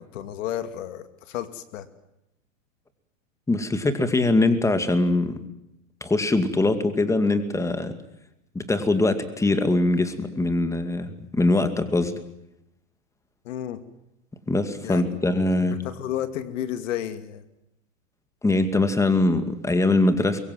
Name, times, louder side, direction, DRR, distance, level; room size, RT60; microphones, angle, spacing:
voice 1, 0.0-1.9 13.4-13.8 14.8-15.0 15.7-17.4, left 11 dB, 65° left, 10 dB, 2.6 m, -32 dB
voice 2, 3.5-5.4 6.0-7.9 8.5-12.1 14.5-15.8 18.4-20.4, left 2 dB, 5° left, 9 dB, 2.3 m, -22 dB
24.0 x 23.0 x 7.8 m, 0.86 s
hypercardioid pair, 130°, 40 cm